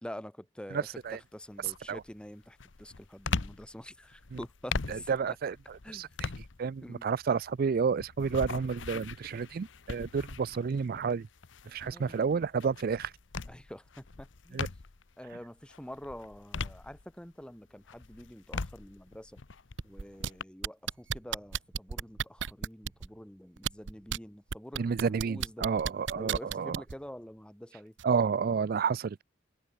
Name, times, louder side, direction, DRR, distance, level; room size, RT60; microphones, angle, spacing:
voice 1, 0.0-0.9 1.3-5.1 5.8-6.2 6.8-7.1 11.8-12.2 13.5-14.7 15.2-19.4 19.8-25.7 26.1-27.9, equal, 5° left, 1.3 m, -46 dB
sound 1, 0.7-1.1 1.6-15.1 15.6-17.4 17.8-20.4, left 4 dB, 80° left, 0.9 m, -40 dB
voice 2, 0.7-1.2 1.6-2.0 4.3-4.4 4.9-6.3 6.6-11.3 11.7-13.1 14.5-14.7 24.8-26.8 28.0-29.2, right 6 dB, 50° right, 0.4 m, -30 dB
sound 2, 19.8-20.3 20.6-23.1 23.6-24.2 24.5-26.9 28.0-28.1, right 7 dB, 75° right, 0.8 m, -33 dB
open air
head